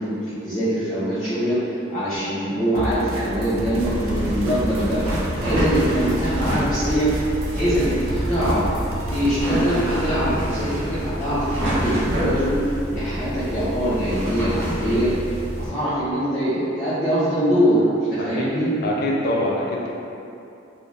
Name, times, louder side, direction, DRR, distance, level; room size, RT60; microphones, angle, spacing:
voice 1, 0.0-1.6 1.9-5.0 5.4-7.1 7.6-8.7 9.1-15.1 15.6-17.8 18.1-18.7, equal, 10° left, -13 dB, 0.7 m, -23 dB
sound 1, 2.8-9.4, right 1 dB, 85° right, 0.3 m, -31 dB
sound 2, 3.8-15.7, equal, 70° right, 1.1 m, -27 dB
voice 2, 18.2-18.5 18.8-19.9, left 1 dB, 50° left, -3 dB, 0.4 m, -24 dB
2.5 x 2.3 x 3.2 m, 2.7 s
head